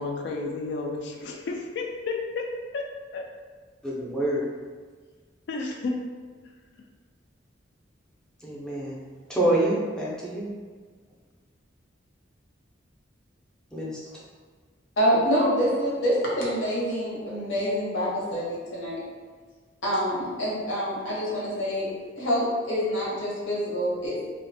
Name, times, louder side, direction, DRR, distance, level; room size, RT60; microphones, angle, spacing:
voice 1, 0.0-2.5 2.7-2.8 3.1-3.2 5.5-6.0, left 3 dB, 60° left, 1 dB, 0.3 m, -31 dB
voice 2, 3.8-4.5 8.4-9.0 9.3-10.5 13.7-14.0, right 1 dB, 5° left, -6 dB, 0.5 m, -26 dB
voice 3, 15.0-19.0 19.8-21.9 22.2-24.3, equal, 75° left, -7 dB, 0.9 m, -26 dB
2.4 x 2.2 x 2.6 m, 1.5 s
head